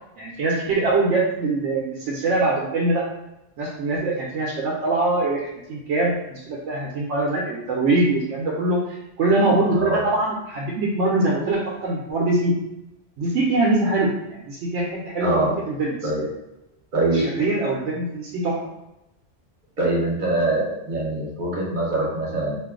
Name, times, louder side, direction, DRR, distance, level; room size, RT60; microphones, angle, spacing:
voice 1, 0.2-3.0 3.6-12.5 13.2-16.1 17.1-18.6, right 2 dB, 85° right, -4 dB, 0.9 m, -23 dB
voice 2, 9.7-10.0 15.2-15.5 16.0-16.2 16.9-17.2 19.8-22.6, right 2 dB, 45° right, -4 dB, 0.9 m, -23 dB
2.5 x 2.3 x 3.6 m, 0.90 s
omnidirectional pair, 1.2 m